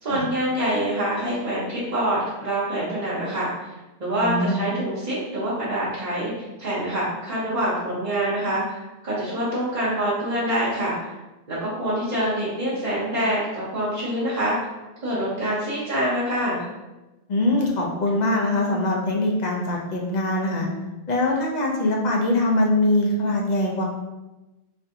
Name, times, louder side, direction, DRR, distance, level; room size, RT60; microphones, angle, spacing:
voice 1, 0.0-3.5 4.0-11.1 11.5-14.5 15.0-16.6, right 1 dB, 40° right, -9 dB, 0.9 m, -25 dB
voice 2, 4.2-4.6 17.3-20.7 21.1-23.8, left 1 dB, 50° left, -1 dB, 0.6 m, -22 dB
4.2 x 2.5 x 2.7 m, 1.1 s
omnidirectional pair, 1.2 m